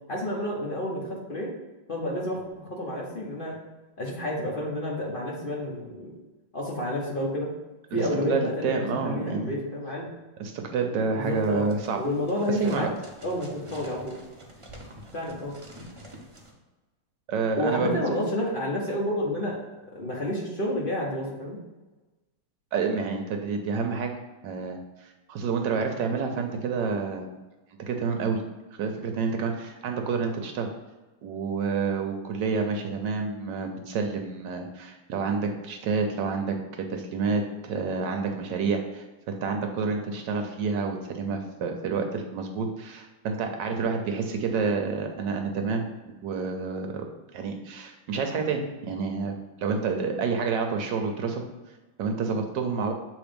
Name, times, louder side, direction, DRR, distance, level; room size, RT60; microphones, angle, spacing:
voice 1, 0.1-1.5 1.9-3.6 4.0-6.1 6.5-7.5 7.9-10.1 11.1-11.7 12.0-12.9 13.2-14.2 15.1-15.6 17.6-19.6 19.9-21.6, left 1 dB, 45° left, -3 dB, 0.7 m, -30 dB
voice 2, 7.9-9.6 10.4-12.0 12.5-12.9 17.3-18.0 22.7-24.1 24.4-27.3 27.9-28.4 28.7-30.7 31.2-45.8 46.2-47.1 47.3-51.4 52.0-52.9, right 5 dB, 70° right, 4 dB, 1.2 m, -29 dB
sound 1, 11.3-16.5, equal, 50° right, 0.3 m, -47 dB
7.2 x 3.2 x 5.1 m, 1.2 s
omnidirectional pair, 2.3 m